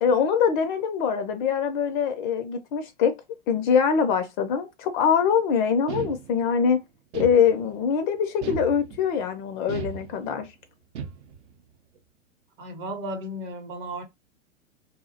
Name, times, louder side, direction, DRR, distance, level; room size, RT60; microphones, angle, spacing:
voice 1, 0.0-3.1 3.5-6.8 7.1-10.5, left 7 dB, 40° left, 0.4 m, -23 dB
sound 1, 5.9-6.6 7.1-7.9 8.4-9.2 9.7-10.5 10.9-11.5, right 6 dB, 65° right, 0.6 m, -36 dB
voice 2, 12.6-14.0, right 1 dB, 30° right, 0.7 m, -34 dB
2.3 x 2.0 x 2.6 m
hypercardioid pair, 110°, 38 cm